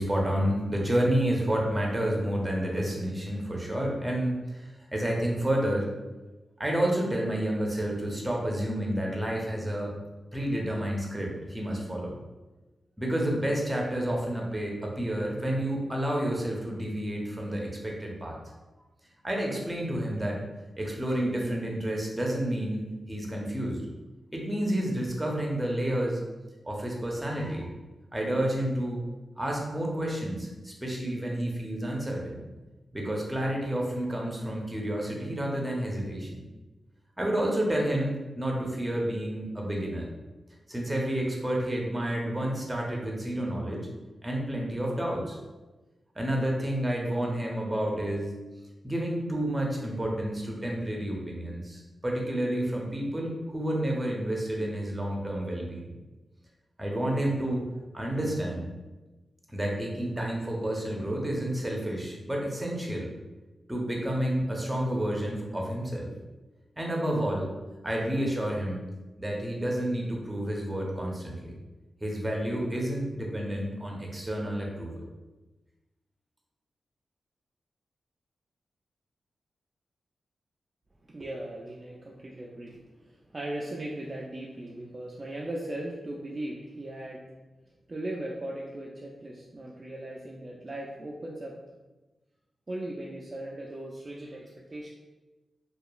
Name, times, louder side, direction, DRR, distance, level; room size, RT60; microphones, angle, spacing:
voice 1, 0.0-5.9 6.6-9.9 10.3-12.2 13.0-18.4 19.2-20.4 20.8-23.8 24.3-26.2 26.6-27.7 28.1-29.0 29.4-32.5 32.9-36.5 37.2-40.1 40.7-43.8 44.2-45.4 46.1-48.3 48.8-55.9 56.8-57.7 57.9-58.7 59.5-63.1 63.7-66.1 66.8-67.5 67.8-68.8 69.2-71.6 72.0-75.0, right 1 dB, 15° right, -1 dB, 0.7 m, -30 dB
voice 2, 81.0-87.2 87.9-91.6 92.7-94.9, right 1 dB, 40° right, -3 dB, 0.3 m, -38 dB
2.8 x 2.3 x 2.3 m, 1.1 s
cardioid pair, 50°, 0 cm